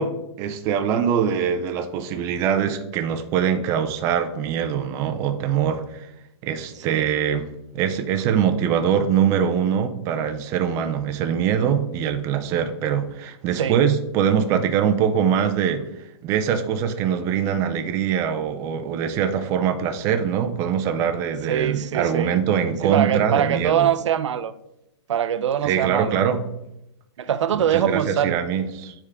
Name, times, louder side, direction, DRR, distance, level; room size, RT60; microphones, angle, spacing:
voice 1, 0.0-6.1 6.4-15.9 16.2-23.9 25.6-26.5 27.5-28.9, right 8 dB, 20° right, 0.4 m, -23 dB
voice 2, 13.5-13.9 21.5-22.3 22.8-24.5 25.1-26.3 27.2-28.4, right 9 dB, 80° right, 0.5 m, -23 dB
9.5 x 3.6 x 3.4 m
hypercardioid pair, 160°, 15 cm